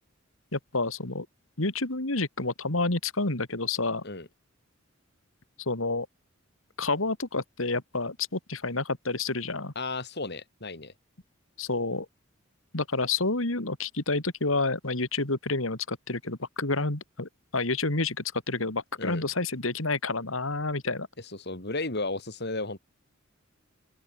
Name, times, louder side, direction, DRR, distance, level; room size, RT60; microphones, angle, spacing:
voice 1, 0.5-1.3 1.6-4.0 5.6-6.1 6.8-9.7 11.6-12.1 12.7-21.1, left 3 dB, 80° left, 3.2 m, -29 dB
voice 2, 9.7-10.9 19.0-19.2 21.4-22.8, left 2 dB, 55° left, 4.4 m, -33 dB
open air
head